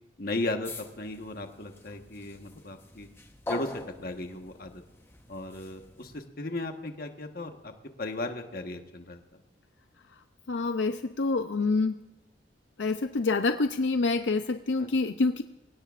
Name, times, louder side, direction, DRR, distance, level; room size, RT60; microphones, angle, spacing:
voice 1, 0.2-3.1 3.5-4.8 5.3-7.7 8.0-9.2 14.8-14.9, left 2 dB, 50° left, 5 dB, 1.3 m, -36 dB
sound 1, 0.6-6.2, left 1 dB, 15° left, 1.0 m, -44 dB
voice 2, 10.1-12.0 12.8-15.4, left 3 dB, 80° left, 8 dB, 0.6 m, -27 dB
26.5 x 16.5 x 2.5 m, 1.1 s
head